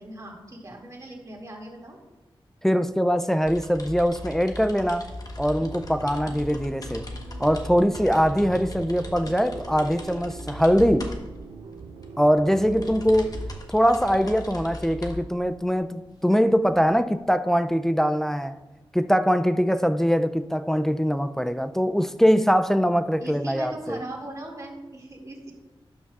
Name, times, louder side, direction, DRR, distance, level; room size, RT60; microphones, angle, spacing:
voice 1, 0.0-2.0 23.2-25.5, right 1 dB, 35° right, 2.2 m, -39 dB
voice 2, 2.6-5.1 5.4-7.1 7.4-11.1 12.2-13.4 13.7-18.5 18.9-24.0, equal, 5° left, 0.3 m, -22 dB
sound 1, 3.4-17.2, left 2 dB, 40° left, 1.1 m, -39 dB
sound 2, 5.6-13.6, right 5 dB, 75° right, 0.6 m, -42 dB
12.0 x 8.7 x 2.4 m
wide cardioid pair, 120°, 9 cm